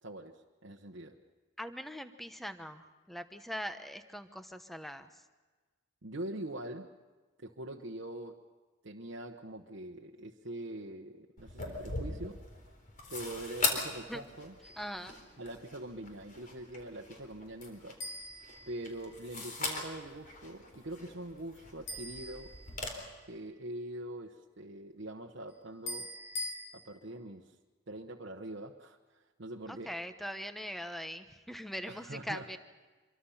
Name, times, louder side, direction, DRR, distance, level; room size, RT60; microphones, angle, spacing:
voice 1, 0.0-1.2 6.0-6.9 7.4-8.4 8.8-12.5 13.1-14.8 15.4-18.0 18.7-22.5 23.3-26.1 26.7-27.5 27.9-29.9 31.9-32.5, right 1 dB, 70° right, 0 dB, 1.1 m, -43 dB
voice 2, 1.6-5.2 14.1-14.2 14.8-15.2 29.7-32.6, equal, ahead, 9 dB, 1.0 m, -41 dB
sound 1, 11.4-22.9, left 3 dB, 45° left, 3.9 m, -41 dB
sound 2, 14.6-15.0 18.0-19.4 21.9-23.2 25.9-26.6, left 1 dB, 85° left, 4.1 m, -43 dB
25.5 x 23.5 x 5.7 m, 1.3 s
head